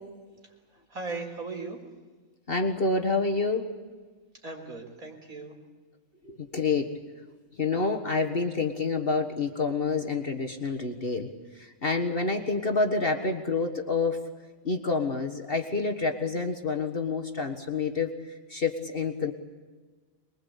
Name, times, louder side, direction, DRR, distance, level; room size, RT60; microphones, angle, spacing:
voice 1, 0.4-1.8 4.4-5.6 12.4-12.5, right 3 dB, 90° right, 2 dB, 4.4 m, -38 dB
voice 2, 2.5-3.7 6.2-6.9 7.5-11.3 11.5-14.3 14.6-19.3, left 4 dB, 45° left, 4 dB, 1.7 m, -28 dB
24.0 x 22.0 x 8.4 m, 1.4 s
omnidirectional pair, 1.4 m